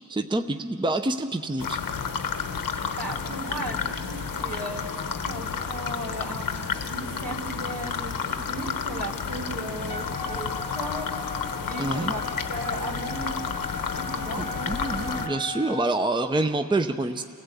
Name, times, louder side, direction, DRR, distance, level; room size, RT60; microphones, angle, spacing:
voice 1, 0.1-1.8 11.8-12.1 14.4-17.2, right 2 dB, 15° right, 7 dB, 0.6 m, -27 dB
sound 1, 1.6-15.3, left 6 dB, 85° left, 1.1 m, -31 dB
voice 2, 2.9-4.9 5.2-6.5 6.9-11.2 11.6-13.4 13.9-15.2, right 1 dB, 70° right, -2 dB, 3.3 m, -36 dB
Wind instrument woodwind instrument, 9.9-16.0, left 3 dB, 20° left, 0.8 m, -37 dB
29.5 x 16.0 x 8.3 m, 2.5 s
wide cardioid pair, 95°, 33 cm